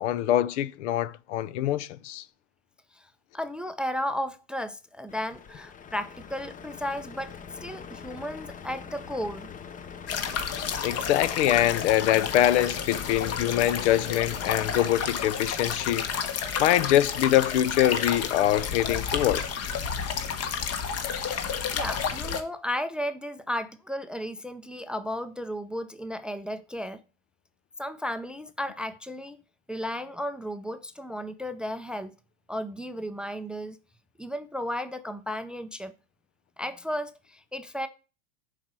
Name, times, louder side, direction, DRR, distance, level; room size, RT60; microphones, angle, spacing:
voice 1, 0.0-2.2 10.8-16.0 16.6-19.4, left 13 dB, 70° left, 0.7 m, -24 dB
voice 2, 3.3-7.3 7.6-9.5 20.5-20.6 21.7-27.0 27.8-29.4 29.7-32.1 32.5-33.8 34.2-35.9 36.6-37.9, equal, 5° right, 0.4 m, -34 dB
Truck, 5.1-16.3, left 6 dB, 20° left, 0.8 m, -43 dB
sound 1, 10.1-22.4, left 7 dB, 40° left, 1.5 m, -31 dB
7.1 x 4.9 x 6.0 m
hypercardioid pair, 105°, 37 cm